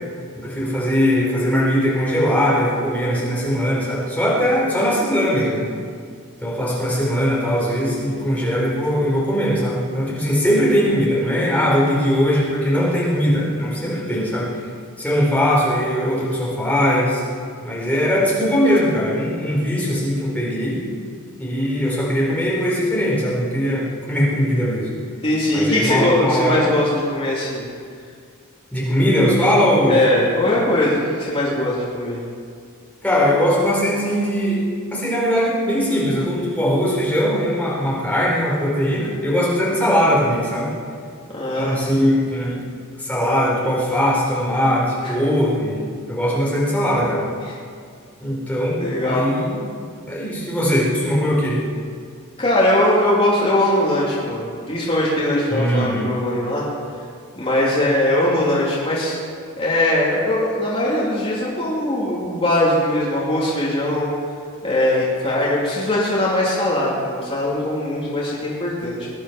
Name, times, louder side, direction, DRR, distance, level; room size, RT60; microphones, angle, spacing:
voice 1, 0.3-5.7 6.4-14.5 15.0-17.2 17.6-20.8 21.4-24.9 25.5-26.7 28.7-30.0 33.0-34.6 34.9-40.7 41.6-42.6 43.0-47.2 48.2-49.6 50.1-51.6 55.5-56.1, equal, 5° left, -6 dB, 4.3 m, -20 dB
voice 2, 25.2-27.6 29.9-32.2 41.3-41.8 45.0-45.1 47.5-47.6 48.8-49.3 52.4-56.7 57.3-59.2 59.6-64.1 64.6-69.1, left 1 dB, 25° left, -6 dB, 2.9 m, -20 dB
21.0 x 10.5 x 6.0 m, 2.2 s
head